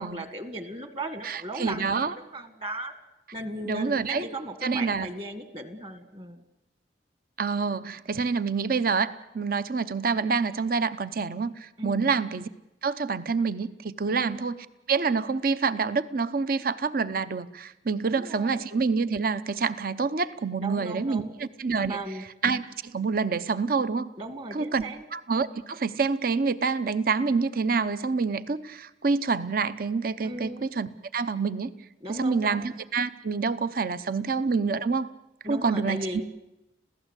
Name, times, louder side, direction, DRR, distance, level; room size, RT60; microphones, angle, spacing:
voice 1, 0.0-2.9 3.3-6.4 11.8-12.1 14.1-14.5 18.0-18.6 20.6-21.3 21.8-22.2 24.2-25.1 30.2-30.7 32.0-32.6 35.4-36.2, right 1 dB, 30° right, 10 dB, 1.8 m, -36 dB
voice 2, 1.2-2.1 3.7-4.3 4.6-5.1 7.4-12.5 12.8-14.6 14.9-22.0 22.4-24.1 24.5-24.8 25.1-31.7 32.2-35.1 35.5-36.2, right 4 dB, 55° right, 14 dB, 0.8 m, -27 dB
27.0 x 16.0 x 8.2 m, 0.91 s
head